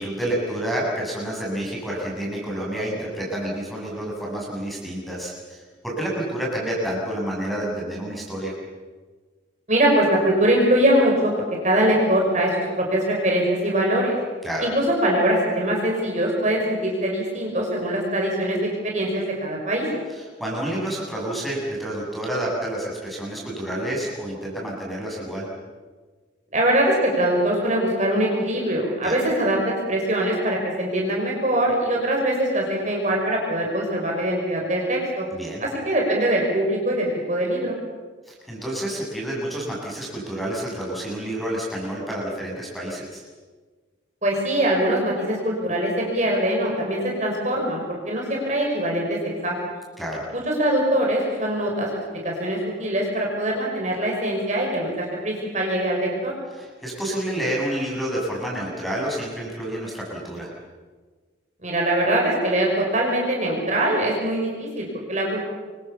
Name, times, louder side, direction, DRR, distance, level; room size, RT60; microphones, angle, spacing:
voice 1, 0.0-8.5 14.4-14.7 20.1-25.5 29.0-29.2 35.3-35.6 38.3-43.2 50.0-50.3 56.6-60.5, right 1 dB, ahead, -4 dB, 7.9 m, -29 dB
voice 2, 9.7-11.3 11.6-14.1 14.6-18.6 18.8-19.9 26.5-35.3 35.6-37.8 44.2-49.5 50.3-51.9 52.2-56.3 61.6-65.5, right 1 dB, 40° right, -1 dB, 6.1 m, -22 dB
28.0 x 24.5 x 7.2 m, 1.4 s
head